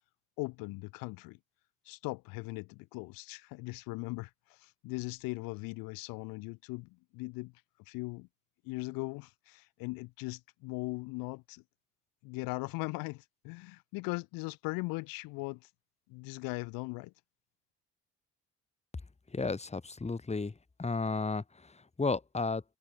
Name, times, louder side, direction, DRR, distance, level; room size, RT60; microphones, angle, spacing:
voice 1, 0.4-1.4 1.8-7.5 7.9-8.3 8.6-11.6 12.2-15.7 16.1-17.1, left 26 dB, 80° left, 1.3 m, -39 dB
voice 2, 19.3-22.6, left 3 dB, 20° left, 1.7 m, -33 dB
hypercardioid pair, 55°, 34 cm